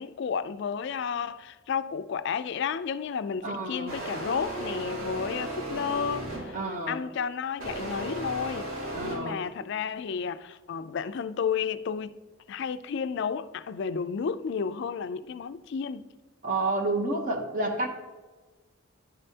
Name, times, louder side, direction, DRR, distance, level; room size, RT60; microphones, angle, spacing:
voice 1, 0.0-6.6 6.9-8.7 9.0-12.2 12.5-16.1, left 6 dB, 55° left, 0.3 m, -32 dB
voice 2, 3.4-4.0 6.5-7.0 8.9-9.4 16.4-17.9, right 2 dB, 40° right, 0.8 m, -29 dB
sound 1, 3.9-6.7 7.6-9.2, right 2 dB, 80° right, 2.3 m, -35 dB
10.5 x 5.4 x 2.8 m
head